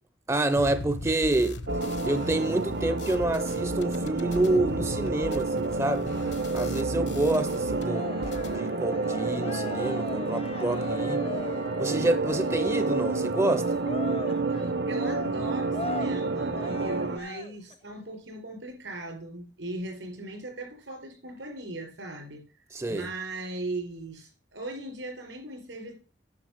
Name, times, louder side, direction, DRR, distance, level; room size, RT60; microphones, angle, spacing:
voice 1, 0.3-6.1 6.5-8.1 8.5-11.3 11.8-13.8 22.7-23.1, right 2 dB, 15° right, 0.5 m, -28 dB
sound 1, 0.6-8.6, left 2 dB, 70° left, 1.1 m, -39 dB
sound 2, 1.7-17.2, right 3 dB, 70° right, 0.7 m, -29 dB
Cheering, 7.7-17.7, left 2 dB, 30° left, 0.6 m, -40 dB
voice 2, 14.5-25.9, right 2 dB, 85° right, 4.5 m, -38 dB
9.6 x 6.1 x 6.4 m
head